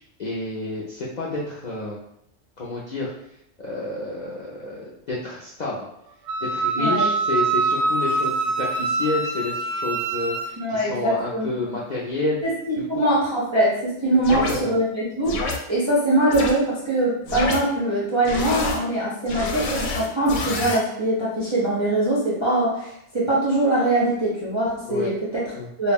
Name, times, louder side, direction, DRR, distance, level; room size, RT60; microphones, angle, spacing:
voice 1, 0.2-2.0 2.6-3.1 3.6-5.8 6.4-12.4 12.8-13.1 14.3-14.8 24.9-25.1 25.6-25.7, left 2 dB, 65° left, -6 dB, 0.4 m, -29 dB
Wind instrument woodwind instrument, 6.3-10.6, right 3 dB, 90° right, 0.9 m, -24 dB
voice 2, 6.7-7.1 10.6-11.5 12.4-25.5 25.8-25.9, right 1 dB, 50° right, -7 dB, 0.3 m, -22 dB
sound 1, 14.2-14.6 15.2-15.6 16.3-16.5 17.3-17.6 18.2-18.8 19.3-20.8, left 3 dB, 90° left, 0.9 m, -27 dB
2.3 x 2.1 x 3.3 m, 0.77 s
omnidirectional pair, 1.2 m